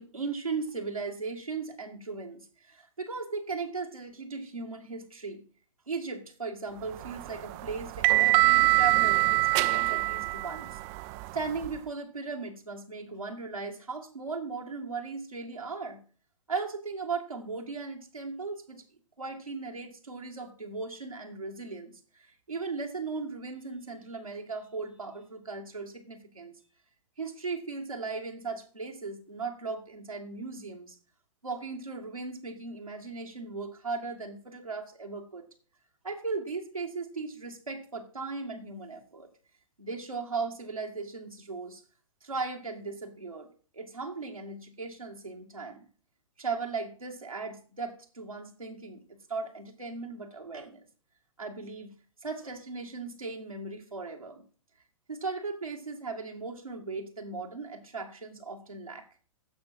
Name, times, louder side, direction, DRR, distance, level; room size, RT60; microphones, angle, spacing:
voice 1, 0.0-5.4 5.9-10.8 11.3-16.0 16.5-18.8 19.2-21.9 22.5-26.5 27.2-31.0 31.4-35.5 36.0-39.3 39.8-41.8 42.2-43.5 43.7-45.8 46.4-50.9 51.4-51.9 52.2-54.4 55.1-59.0, right 4 dB, 90° right, 1 dB, 2.2 m, -37 dB
sound 1, 6.9-11.8, right 20 dB, 25° right, 0.4 m, -25 dB
15.0 x 5.8 x 4.4 m, 0.39 s
figure-of-eight pair, 115°, 17 cm